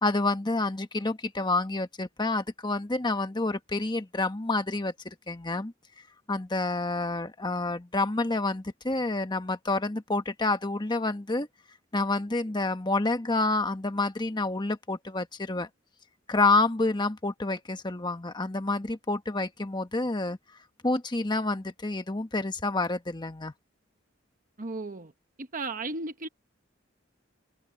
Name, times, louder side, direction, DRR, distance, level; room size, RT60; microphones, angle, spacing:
voice 1, 0.0-5.7 6.3-11.5 11.9-15.7 16.3-20.4 20.8-23.5, left 2 dB, 25° left, 1.2 m, -28 dB
voice 2, 24.6-25.1 25.4-26.3, right 3 dB, 45° right, 1.1 m, -35 dB
head